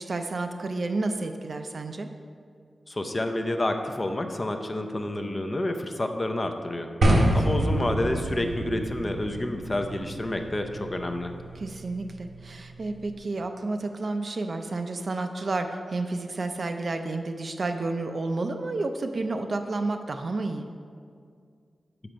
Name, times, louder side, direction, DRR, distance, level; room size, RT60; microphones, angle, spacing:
voice 1, 0.0-2.1 7.1-7.3 11.6-20.7, right 3 dB, 45° right, 6 dB, 0.4 m, -31 dB
voice 2, 2.9-6.9 7.3-11.4, left 1 dB, 25° left, 6 dB, 0.4 m, -29 dB
sound 1, 7.0-13.1, right 1 dB, 85° right, 1.0 m, -28 dB
6.4 x 5.9 x 5.0 m, 2.2 s
wide cardioid pair, 170°, 0 cm